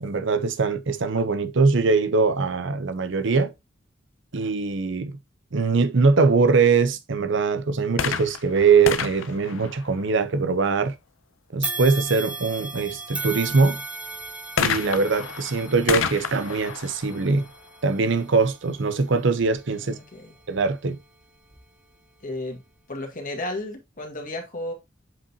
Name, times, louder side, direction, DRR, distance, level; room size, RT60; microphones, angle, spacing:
voice 1, 0.0-3.5 4.3-5.1 5.5-10.9 11.5-13.8 14.6-17.4 17.8-19.9 20.5-21.0, right 4 dB, 65° right, 0.7 m, -22 dB
sound 1, 7.9-10.5 14.6-18.2 19.0-19.1, left 7 dB, 85° left, 0.6 m, -30 dB
sound 2, 11.6-20.9 21.4-21.6 22.6-22.7, right 3 dB, 5° right, 0.7 m, -37 dB
voice 2, 19.7-20.4 22.2-22.6 22.9-24.7, left 1 dB, 45° left, 1.9 m, -33 dB
7.5 x 5.3 x 2.8 m
head